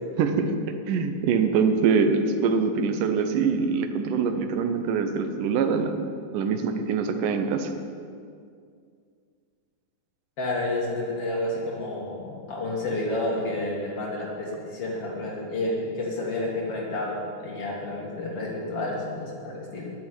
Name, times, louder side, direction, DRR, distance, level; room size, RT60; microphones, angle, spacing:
voice 1, 0.2-0.5 0.9-6.0 6.3-7.7, right 5 dB, 75° right, 7 dB, 2.3 m, -24 dB
voice 2, 10.4-19.9, left 2 dB, 50° left, -3 dB, 2.4 m, -30 dB
11.0 x 7.2 x 9.6 m, 2.3 s
omnidirectional pair, 4.0 m